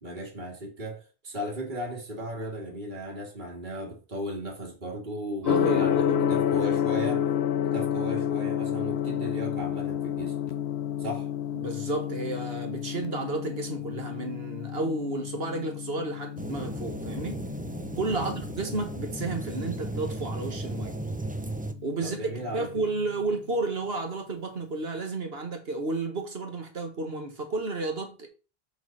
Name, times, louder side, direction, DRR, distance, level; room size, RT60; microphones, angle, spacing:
voice 1, 0.0-7.3 7.7-10.4 11.0-11.3 18.1-18.4 22.0-22.7, equal, 50° right, 2.1 m, -36 dB
voice 2, 5.4-6.5 11.5-17.4 18.0-20.9 21.8-22.3 22.5-28.3, right 3 dB, 75° right, 1.8 m, -32 dB
Gong, 5.5-23.3, left 9 dB, 90° left, 0.9 m, -31 dB
sound 1, 16.4-21.7, right 2 dB, 10° right, 0.5 m, -35 dB
6.5 x 4.7 x 5.7 m
omnidirectional pair, 1.0 m